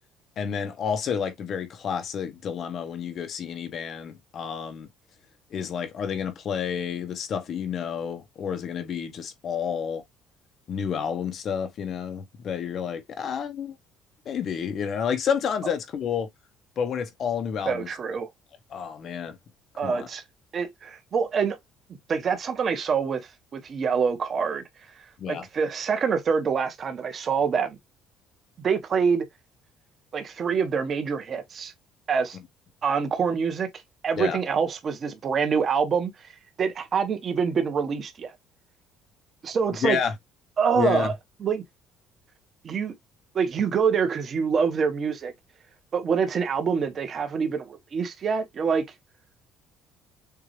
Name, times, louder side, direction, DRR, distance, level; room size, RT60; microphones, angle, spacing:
voice 1, 0.4-4.9 5.5-10.0 10.7-13.8 14.3-16.3 16.8-17.9 18.7-19.4 19.8-20.1 25.2-25.5 34.2-34.4 39.8-40.1 40.7-41.1, left 7 dB, 45° left, 0.8 m, -30 dB
voice 2, 17.7-18.3 19.8-20.2 20.5-21.6 22.1-24.6 25.0-27.8 28.6-29.2 30.1-31.7 32.1-32.4 32.8-33.7 34.0-36.3 36.6-38.3 39.4-40.0 40.6-41.1 41.4-41.6 42.6-42.9 43.3-45.3 45.9-48.8, right 6 dB, 35° right, 1.1 m, -26 dB
6.8 x 2.5 x 3.1 m
cardioid pair, 155°, 0 cm